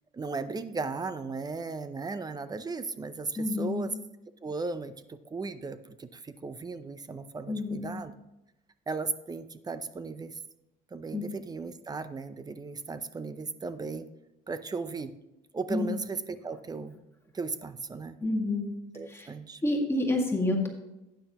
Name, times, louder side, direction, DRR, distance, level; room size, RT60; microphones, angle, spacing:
voice 1, 0.1-3.9 4.4-8.1 8.9-10.4 10.9-14.1 14.5-15.1 15.5-17.0 17.3-18.2 18.9-19.6, right 4 dB, 25° right, 12 dB, 0.6 m, -36 dB
voice 2, 3.4-3.9 7.5-7.9 11.1-11.2 15.7-15.9 18.2-18.7 19.1-19.3 19.6-20.7, left 2 dB, 15° left, 0 dB, 2.0 m, -28 dB
12.0 x 9.0 x 3.0 m, 0.93 s
cardioid pair, 110°, 17 cm